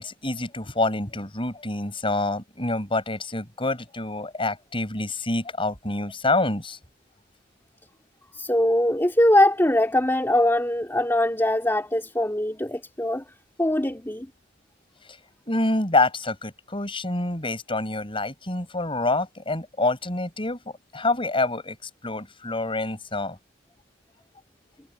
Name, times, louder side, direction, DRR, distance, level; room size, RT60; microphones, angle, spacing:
voice 1, 0.0-6.8 15.5-20.6 20.9-23.4, left 2 dB, 30° left, 5.7 m, -27 dB
voice 2, 8.3-13.2 13.6-14.3, left 1 dB, 15° left, 2.6 m, -22 dB
head